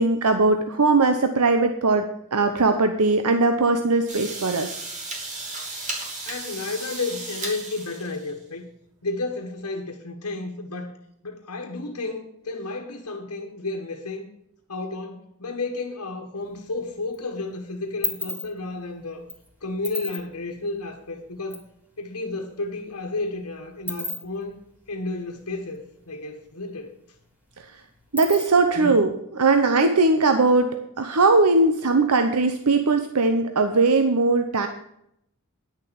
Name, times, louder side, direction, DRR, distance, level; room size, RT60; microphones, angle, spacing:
voice 1, 0.0-4.8 28.1-34.7, right 3 dB, 85° right, 7 dB, 0.9 m, -20 dB
sound 1, 4.1-8.4, right 2 dB, 35° right, 3.0 m, -35 dB
voice 2, 5.8-8.7 9.0-11.0 11.2-14.3 14.7-19.2 19.6-21.7 22.0-24.6 24.9-26.9 28.7-29.0, left 3 dB, 85° left, 0 dB, 1.5 m, -32 dB
sound 2, 16.4-17.2 17.5-21.7 22.0-22.1 22.3-26.1 26.4-26.5 26.8-28.8, left 1 dB, 10° right, 2.4 m, -35 dB
10.5 x 6.8 x 7.1 m, 0.75 s
head